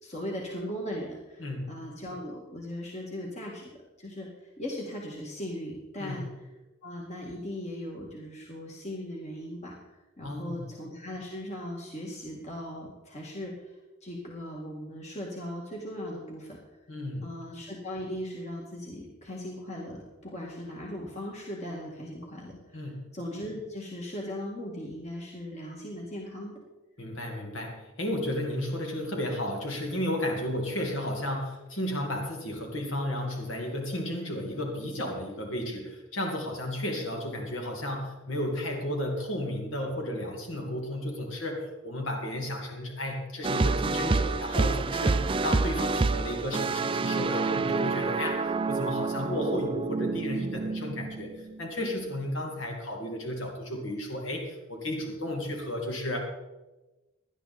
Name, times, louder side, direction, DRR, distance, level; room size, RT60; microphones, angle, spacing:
voice 1, 0.0-6.2 6.8-9.8 10.2-16.6 17.2-26.6, left 1 dB, 35° left, -2 dB, 2.0 m, -38 dB
voice 2, 1.4-1.7 6.0-6.3 10.2-10.6 16.9-17.3 22.7-23.1 27.0-56.2, left 1 dB, 70° left, 1 dB, 2.1 m, -33 dB
sound 1, 43.4-51.6, right 3 dB, 25° right, 0.4 m, -28 dB
17.5 x 11.0 x 4.2 m, 1.1 s
head